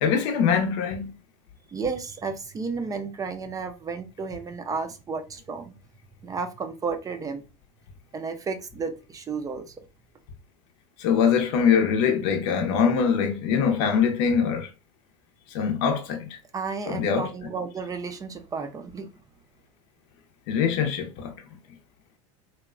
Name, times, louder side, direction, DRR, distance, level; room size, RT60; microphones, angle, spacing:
voice 1, 0.0-1.1 11.0-14.7 15.5-16.3 16.9-17.3 20.5-21.3, left 7 dB, 70° left, 0.7 m, -23 dB
voice 2, 1.7-5.7 6.2-7.4 8.1-9.7 16.5-19.1, right 5 dB, 20° right, 0.4 m, -32 dB
2.9 x 2.1 x 2.3 m
supercardioid pair, 110°, 16 cm